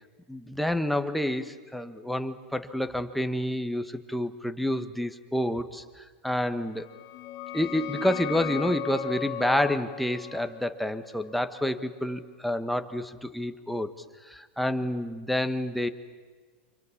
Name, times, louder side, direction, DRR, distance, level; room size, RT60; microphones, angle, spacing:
voice 1, 0.3-6.9 7.5-13.9 14.2-15.9, left 1 dB, ahead, 8 dB, 1.5 m, -29 dB
sound 1, 6.8-12.2, left 12 dB, 45° left, 1.4 m, -37 dB
29.0 x 26.5 x 7.4 m, 1.5 s
supercardioid pair, 130°, 6 cm